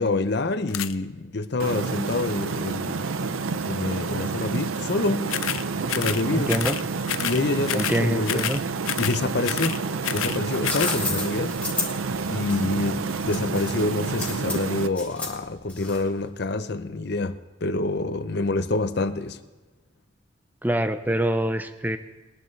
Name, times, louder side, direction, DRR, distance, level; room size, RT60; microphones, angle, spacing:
voice 1, 0.0-3.0 3.7-5.3 5.9-6.5 7.2-8.4 9.0-9.8 10.1-11.6 12.3-19.4, left 2 dB, 55° left, 0.7 m, -27 dB
sound 1, 0.7-0.9 5.3-5.6 5.9-6.2 6.5-6.8 7.1-7.4 7.7-8.0 8.3-8.6 8.8-9.2 9.4-10.4 10.6-11.0, left 11 dB, 90° left, 0.5 m, -28 dB
sound 2, 1.6-14.9, right 4 dB, 90° right, 0.6 m, -29 dB
voice 2, 6.3-6.8 7.7-8.6 20.6-22.0, right 1 dB, 10° right, 0.6 m, -25 dB
sound 3, 10.3-16.2, left 3 dB, 5° left, 2.2 m, -32 dB
21.5 x 11.0 x 3.3 m
head